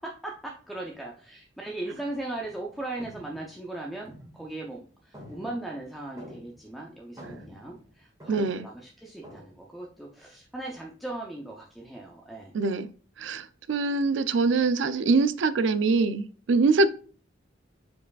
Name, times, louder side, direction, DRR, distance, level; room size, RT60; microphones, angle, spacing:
voice 1, 0.0-12.6, right 2 dB, ahead, 0.5 m, -38 dB
sound 1, 2.3-2.6 3.0-4.8 5.1-6.8 7.0-8.7 9.2-9.5, equal, 20° right, 1.7 m, -48 dB
voice 2, 8.3-8.7 12.5-12.9 13.2-16.9, right 3 dB, 75° right, 0.4 m, -24 dB
4.8 x 4.6 x 2.3 m
head